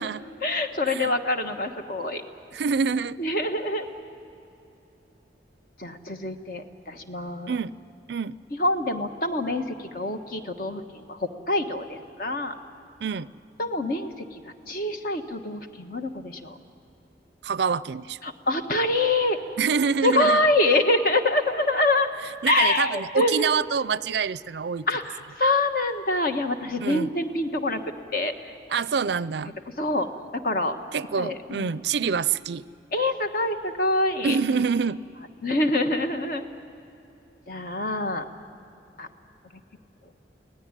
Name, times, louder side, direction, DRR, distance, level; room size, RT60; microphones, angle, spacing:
voice 1, 0.4-2.2 3.2-3.9 5.8-7.5 8.5-12.5 13.6-14.4 14.7-16.6 18.2-19.4 20.0-22.1 22.5-23.6 24.9-28.5 29.8-30.1 30.4-30.8 31.2-31.7 32.9-34.4 35.4-36.5 37.5-38.2 39.0-39.1, left 2 dB, 50° left, 6 dB, 1.4 m, -25 dB
voice 2, 2.5-3.2 7.5-7.7 8.1-8.3 13.0-13.3 17.4-18.2 19.6-20.4 22.4-24.9 26.8-27.1 28.7-29.6 30.9-32.6 34.2-35.0, right 6 dB, 70° right, 18 dB, 0.4 m, -26 dB
24.5 x 17.5 x 9.8 m, 2.9 s
head